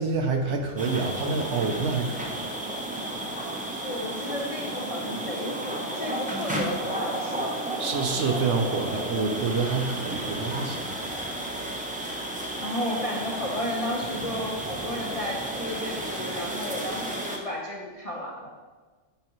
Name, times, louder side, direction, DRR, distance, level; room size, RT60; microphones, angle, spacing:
voice 1, 0.0-2.4 7.8-10.9, right 4 dB, 65° right, 3 dB, 0.9 m, -27 dB
sound 1, 0.8-17.4, right 1 dB, 10° right, 0.4 m, -32 dB
voice 2, 3.8-7.5 12.6-18.5, left 1 dB, 40° left, -2 dB, 0.6 m, -33 dB
8.5 x 4.8 x 3.1 m, 1.3 s
omnidirectional pair, 1.3 m